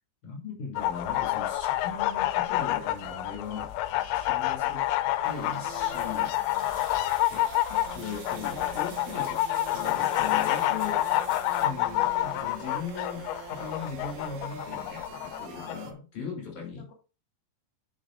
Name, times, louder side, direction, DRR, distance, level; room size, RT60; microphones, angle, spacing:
voice 1, 0.2-3.7 4.1-4.9 5.2-6.3 7.3-9.4 9.7-11.0 11.6-16.9, left 5 dB, 55° left, 3.9 m, -39 dB
sound 1, 0.8-15.8, left 14 dB, 90° left, 2.6 m, -28 dB
voice 2, 3.5-4.1 6.0-6.9 15.6-15.7 16.8-16.9, left 9 dB, 40° left, 1.9 m, -50 dB
sound 2, 5.2-15.9, right 8 dB, 85° right, 2.9 m, -45 dB
sound 3, 5.7-11.7, right 3 dB, 45° right, 3.7 m, -48 dB
9.0 x 6.3 x 2.5 m
omnidirectional pair, 4.4 m